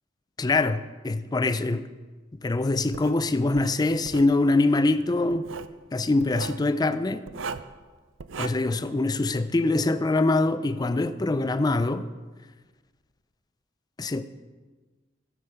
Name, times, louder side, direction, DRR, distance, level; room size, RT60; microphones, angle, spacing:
voice 1, 0.4-1.9 2.4-5.5 5.9-7.2 8.4-12.1 14.0-14.2, left 2 dB, 20° left, 0.4 m, -24 dB
Writing, 2.9-3.2 3.6-4.3 5.3-5.8 6.2-6.6 7.3-7.8 8.2-8.5, right 5 dB, 75° right, 0.5 m, -36 dB
13.0 x 6.0 x 6.8 m
head